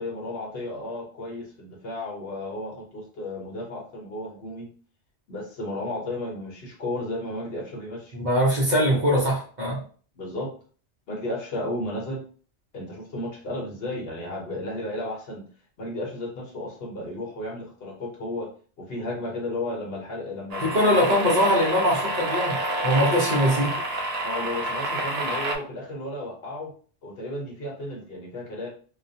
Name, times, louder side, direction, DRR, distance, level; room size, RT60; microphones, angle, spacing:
voice 1, 0.0-4.7 5.3-8.2 10.1-10.5 11.1-12.2 12.7-15.4 15.8-18.5 18.8-21.3 24.2-26.7 27.0-28.7, left 1 dB, 60° left, -1 dB, 0.9 m, -33 dB
voice 2, 8.1-9.8 20.6-22.6 22.8-23.7, equal, 45° right, -4 dB, 0.8 m, -22 dB
sound 1, 20.5-25.6, right 1 dB, 75° right, 0.3 m, -28 dB
2.3 x 2.2 x 2.6 m, 0.42 s
omnidirectional pair, 1.2 m